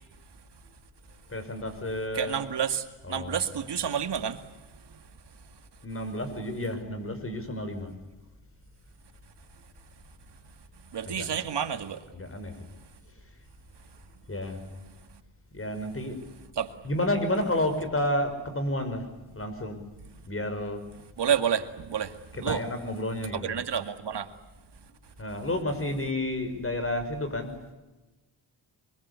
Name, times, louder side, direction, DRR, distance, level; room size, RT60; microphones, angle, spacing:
voice 1, 1.3-2.4 3.0-3.5 5.8-7.9 11.1-11.3 12.1-12.5 13.0-13.1 14.3-14.7 15.5-16.2 16.8-19.1 19.3-19.8 20.3-20.8 22.3-23.5 25.2-27.5, left 1 dB, 25° left, 5.8 m, -31 dB
voice 2, 2.1-4.4 10.9-12.0 16.6-16.7 21.2-22.1 22.4-22.6 23.3-24.3, right 8 dB, 55° right, 2.3 m, -29 dB
24.5 x 23.5 x 8.4 m
cardioid pair, 90°, 48 cm